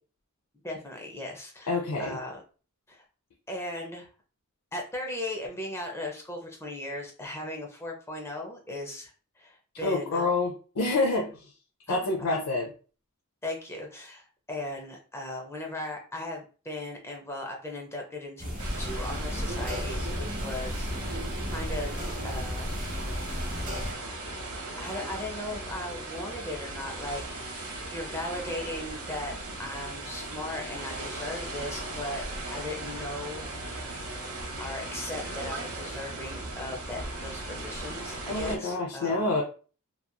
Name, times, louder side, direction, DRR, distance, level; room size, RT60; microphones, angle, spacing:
voice 1, 0.6-2.4 2.9-3.0 3.5-4.1 4.7-10.3 11.9-12.0 12.3-12.4 13.4-21.9 22.2-22.9 24.8-29.3 29.6-32.2 32.5-34.1 34.6-39.3, left 1 dB, 10° left, 1 dB, 0.5 m, -38 dB
voice 2, 1.7-2.2 9.8-11.5 11.9-12.7 38.3-39.4, left 2 dB, 85° left, 0 dB, 0.5 m, -27 dB
sound 1, 18.4-23.9, equal, 40° right, 1.0 m, -34 dB
sound 2, 18.6-38.6, right 2 dB, 75° right, 0.7 m, -37 dB
2.9 x 2.4 x 2.2 m, 0.38 s
head